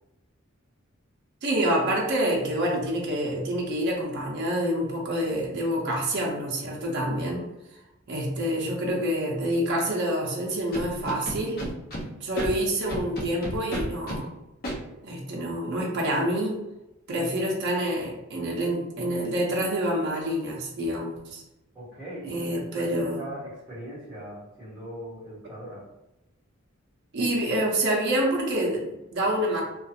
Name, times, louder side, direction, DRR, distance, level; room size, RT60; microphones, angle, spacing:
voice 1, 1.4-7.5 8.1-11.7 12.0-14.3 15.0-16.6 17.1-21.4 22.3-23.2 27.1-29.6, right 1 dB, 55° right, -2 dB, 0.5 m, -27 dB
Scratching (performance technique), 10.7-12.0 12.3-12.5 12.9-14.2 14.6-14.7, equal, 45° left, 0.6 m, -32 dB
voice 2, 21.7-25.9, right 1 dB, 5° right, -12 dB, 1.2 m, -40 dB
2.4 x 2.3 x 2.7 m, 0.96 s
head